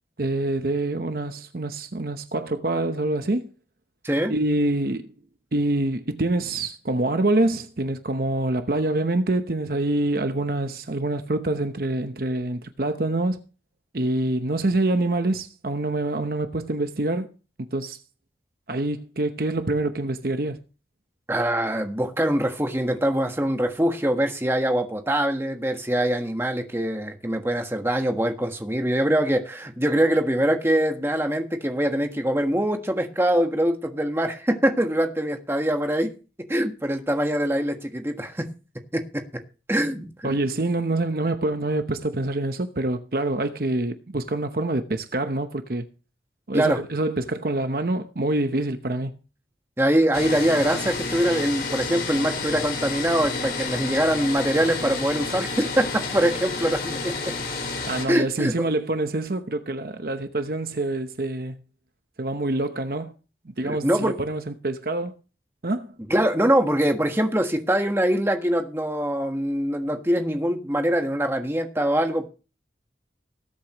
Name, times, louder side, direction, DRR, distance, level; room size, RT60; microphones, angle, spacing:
voice 1, 0.2-3.5 4.3-5.1 5.5-13.4 13.9-17.3 17.7-18.0 18.7-20.6 40.2-45.8 46.5-49.1 57.9-61.6 62.2-63.2 63.4-65.1 65.6-66.0, right 2 dB, 55° right, 0.9 m, -26 dB
voice 2, 21.3-36.1 36.5-38.5 38.9-39.4 39.7-40.3 46.5-46.8 49.8-57.3 58.1-58.7 63.6-64.2 66.1-72.3, right 1 dB, 15° right, 1.4 m, -23 dB
sound 1, 50.1-58.0, left 4 dB, 60° left, 4.1 m, -30 dB
19.5 x 8.4 x 3.1 m
head